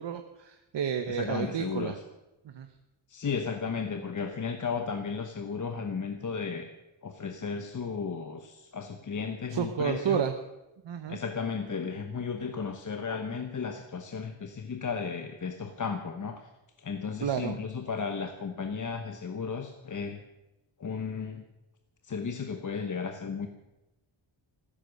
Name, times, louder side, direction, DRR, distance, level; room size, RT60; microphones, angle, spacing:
voice 1, 0.0-2.0 2.4-2.7 9.5-10.3 10.8-11.2 17.2-17.6, right 8 dB, 60° right, 7 dB, 1.1 m, -31 dB
voice 2, 1.1-2.0 3.1-6.7 7.0-10.2 11.1-16.5 16.8-20.2 20.8-21.4 22.0-23.5, left 5 dB, 40° left, 6 dB, 1.0 m, -34 dB
15.0 x 13.5 x 6.4 m, 0.97 s
wide cardioid pair, 175°, 49 cm